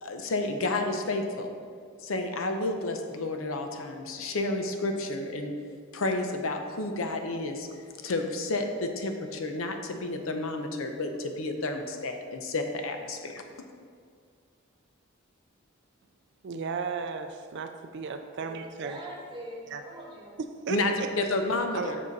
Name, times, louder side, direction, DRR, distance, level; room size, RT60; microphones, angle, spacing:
voice 1, 0.0-1.5 2.0-5.5 5.9-7.7 8.0-13.4 20.7-22.0, left 2 dB, 75° left, 5 dB, 0.7 m, -31 dB
voice 2, 16.4-19.0 19.7-19.8 20.4-21.1 21.7-21.9, right 5 dB, 55° right, 7 dB, 0.4 m, -35 dB
voice 3, 18.4-20.4, right 1 dB, 25° right, -3 dB, 1.4 m, -42 dB
7.6 x 5.5 x 4.0 m, 2.1 s
head